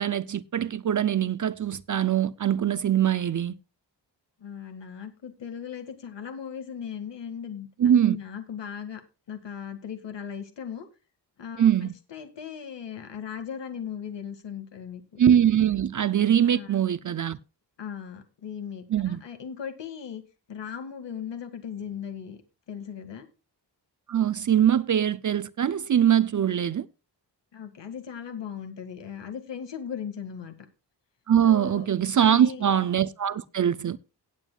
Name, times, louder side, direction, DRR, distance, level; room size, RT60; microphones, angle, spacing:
voice 1, 0.0-3.5 7.8-8.2 11.6-11.9 15.2-17.4 18.9-19.2 24.1-26.9 31.3-34.0, right 9 dB, 45° right, 0.5 m, -22 dB
voice 2, 4.4-9.0 9.3-10.9 11.4-15.2 16.4-16.8 17.8-20.2 20.5-22.4 22.7-23.3 27.5-30.5 31.4-31.9 32.1-32.7, left 8 dB, 80° left, 2.0 m, -38 dB
18.5 x 9.0 x 2.3 m
wide cardioid pair, 160°, 43 cm